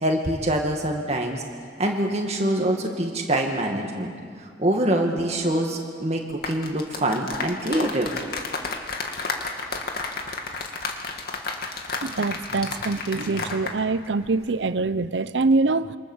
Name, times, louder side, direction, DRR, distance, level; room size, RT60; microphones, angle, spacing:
voice 1, 0.0-1.4 1.8-4.1 4.6-8.1, right 1 dB, 35° right, 1 dB, 2.0 m, -24 dB
sound 1, 6.3-13.8 14.0-14.3, left 3 dB, 60° left, 2.4 m, -32 dB
voice 2, 12.0-16.0, right 3 dB, 85° right, 15 dB, 0.7 m, -24 dB
27.5 x 24.5 x 7.3 m, 2.1 s
head